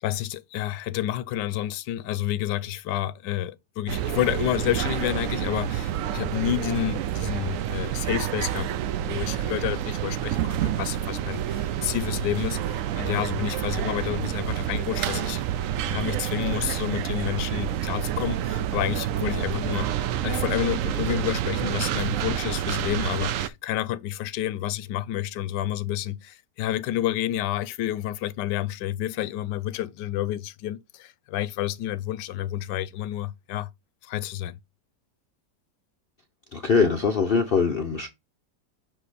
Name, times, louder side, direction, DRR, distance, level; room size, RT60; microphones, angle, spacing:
voice 1, 0.0-15.4 15.8-19.9 20.2-33.7 34.0-34.6, left 13 dB, 80° left, 1.2 m, -29 dB
sound 1, 3.9-23.5, right 11 dB, 75° right, 0.7 m, -28 dB
voice 2, 36.5-38.1, left 5 dB, 60° left, 0.6 m, -22 dB
7.6 x 2.9 x 4.1 m
omnidirectional pair, 1.9 m